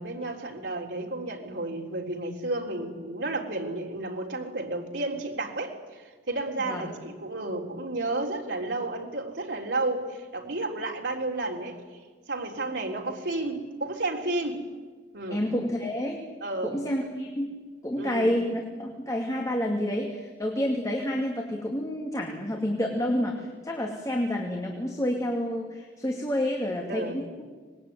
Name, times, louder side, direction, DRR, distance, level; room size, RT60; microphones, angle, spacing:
voice 1, 0.0-11.8 12.3-14.7 15.1-15.4 16.4-16.8 18.0-18.4 26.9-27.2, right 2 dB, 80° right, 0 dB, 3.7 m, -32 dB
voice 2, 15.3-16.2 16.6-27.4, left 1 dB, 20° left, 0 dB, 2.6 m, -29 dB
25.0 x 20.5 x 9.6 m, 1.4 s
head